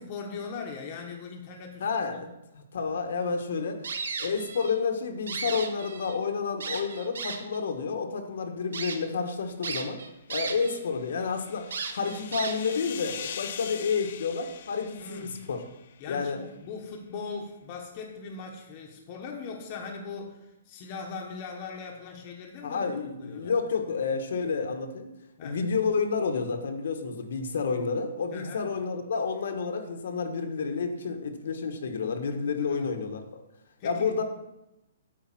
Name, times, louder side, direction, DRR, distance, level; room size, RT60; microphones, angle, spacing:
voice 1, 0.0-2.2 15.0-15.4 16.0-22.9 23.2-23.5 25.4-25.6 28.3-28.6 32.7-33.0 33.8-34.2, left 4 dB, 25° left, 1 dB, 1.1 m, -40 dB
voice 2, 1.8-2.3 2.5-3.8 4.2-10.0 10.3-15.6 16.1-16.4 22.6-25.1 25.4-33.2 33.8-34.2, left 5 dB, 65° left, 5 dB, 1.3 m, -30 dB
sound 1, 3.8-4.8 5.1-6.2 6.6-7.6 8.2-8.3 8.7-9.0 9.6-10.8 11.1-11.2 11.7-12.8, right 5 dB, 80° right, 1.3 m, -35 dB
sound 2, 10.6-16.0, left 8 dB, 45° left, 0.5 m, -42 dB
8.8 x 4.8 x 7.5 m, 0.89 s
hypercardioid pair, 175°, 0 cm